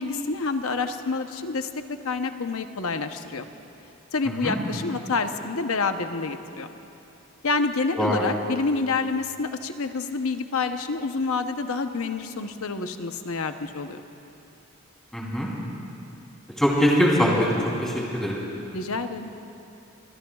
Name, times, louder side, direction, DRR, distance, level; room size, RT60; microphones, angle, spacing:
voice 1, 0.0-3.5 4.1-6.7 7.4-14.0 18.7-19.3, left 4 dB, 75° left, 7 dB, 0.8 m, -28 dB
voice 2, 4.2-4.6 8.0-8.2 15.1-15.5 16.6-17.5 17.8-18.4, equal, ahead, -5 dB, 3.2 m, -22 dB
27.0 x 22.0 x 2.4 m, 2.7 s
head